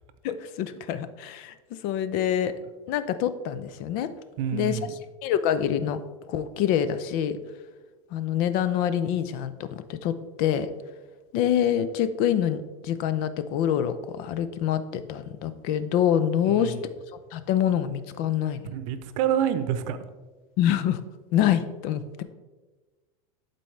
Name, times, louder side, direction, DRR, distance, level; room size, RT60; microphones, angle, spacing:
voice 1, 0.2-1.5 1.8-2.5 2.9-4.1 4.5-4.8 5.2-6.0 6.3-7.4 8.1-10.1 10.4-10.7 11.3-16.7 17.3-18.7 20.6-21.0 21.3-22.2, left 10 dB, 55° left, 12 dB, 0.6 m, -26 dB
voice 2, 4.4-5.0 16.4-16.8 18.7-20.0, right 9 dB, 65° right, 11 dB, 0.7 m, -27 dB
11.0 x 4.2 x 3.2 m, 1.3 s
supercardioid pair, 115°, 18 cm